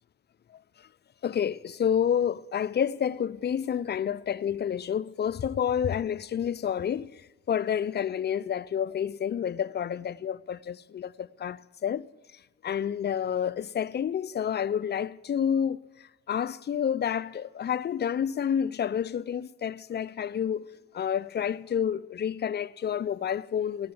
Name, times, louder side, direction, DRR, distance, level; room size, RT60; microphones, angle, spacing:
voice 1, 1.2-7.1 7.5-12.1 12.6-15.8 16.3-20.7 20.9-23.9, left 8 dB, 35° left, 0.4 m, -29 dB
18.5 x 7.7 x 9.6 m
cardioid pair, 90°, 30 cm